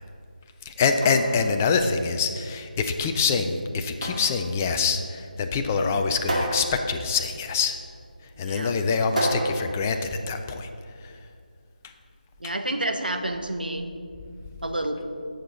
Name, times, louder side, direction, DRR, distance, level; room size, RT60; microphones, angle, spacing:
voice 1, 0.7-7.8 8.4-10.7 11.0-11.1, left 5 dB, 15° left, 6 dB, 0.4 m, -25 dB
sound 1, 0.7-10.7, right 1 dB, 55° right, 2.0 m, -33 dB
voice 2, 8.4-8.7 12.4-13.9 14.6-15.0, right 1 dB, 80° right, 5 dB, 1.1 m, -29 dB
15.5 x 6.6 x 3.9 m, 2.3 s
figure-of-eight pair, 160°, 5 cm